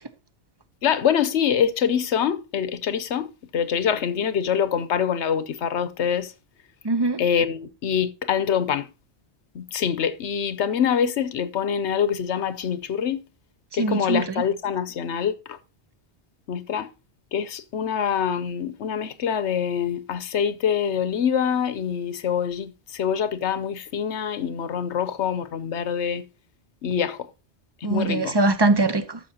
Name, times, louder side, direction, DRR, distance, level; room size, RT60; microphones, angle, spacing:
voice 1, 0.8-6.3 7.2-8.9 9.5-13.2 13.7-15.6 16.5-16.9 17.3-26.2 26.8-27.2 27.8-28.4, left 8 dB, 90° left, 1.1 m, -25 dB
voice 2, 6.8-7.2 13.8-14.2 27.8-29.2, right 2 dB, 25° right, 0.7 m, -22 dB
12.5 x 6.9 x 2.8 m
omnidirectional pair, 1.1 m